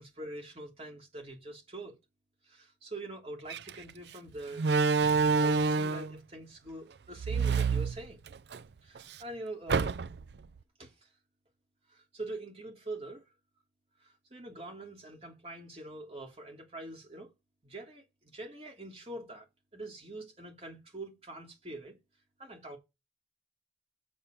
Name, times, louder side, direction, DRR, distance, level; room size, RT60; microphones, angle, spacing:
voice 1, 0.0-2.0 2.4-4.8 5.3-8.2 8.8-9.9 10.8-11.1 11.9-13.2 14.0-17.3 17.6-19.5 19.7-22.0 22.4-22.8, right 2 dB, 35° right, 3.1 m, -44 dB
Slam, 3.5-3.7 4.6-6.1 7.2-8.6 9.0-9.1 9.7-10.3, right 4 dB, 75° right, 0.5 m, -27 dB
7.3 x 6.7 x 6.3 m
head